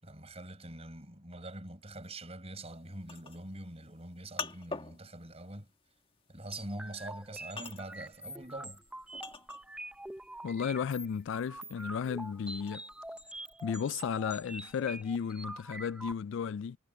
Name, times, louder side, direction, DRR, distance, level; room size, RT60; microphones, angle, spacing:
voice 1, 0.0-5.7 6.3-8.8, right 1 dB, 30° right, 5.9 m, -44 dB
sound 1, 2.7-10.0 10.3-13.2, left 4 dB, 25° left, 1.6 m, -45 dB
sound 2, 6.5-16.1, right 1 dB, 5° right, 0.6 m, -45 dB
voice 2, 10.4-12.8 13.6-16.8, left 7 dB, 60° left, 0.3 m, -34 dB
head